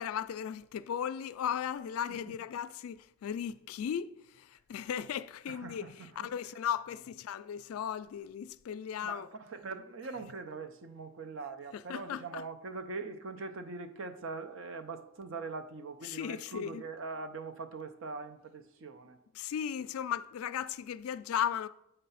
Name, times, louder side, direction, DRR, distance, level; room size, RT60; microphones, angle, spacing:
voice 1, 0.0-9.3 10.2-10.3 11.7-12.4 16.0-16.8 19.3-21.7, left 9 dB, 80° left, 0.3 m, -36 dB
voice 2, 5.5-6.3 9.0-19.2, right 4 dB, 65° right, 0.6 m, -42 dB
7.9 x 3.3 x 5.6 m
head